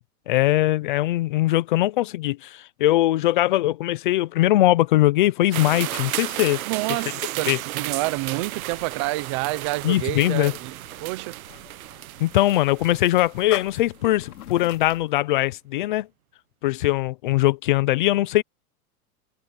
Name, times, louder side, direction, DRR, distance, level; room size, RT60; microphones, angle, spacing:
voice 1, 0.3-6.6 7.5-7.6 9.8-10.5 12.2-16.1 16.6-18.4, left 15 dB, 35° left, 0.5 m, -21 dB
sound 1, 5.5-14.1, right 15 dB, 65° right, 1.2 m, -34 dB
voice 2, 6.7-11.4, right 20 dB, 20° right, 0.5 m, -28 dB
sound 2, 7.7-15.1, left 12 dB, 75° left, 2.7 m, -45 dB
supercardioid pair, 165°, 45 cm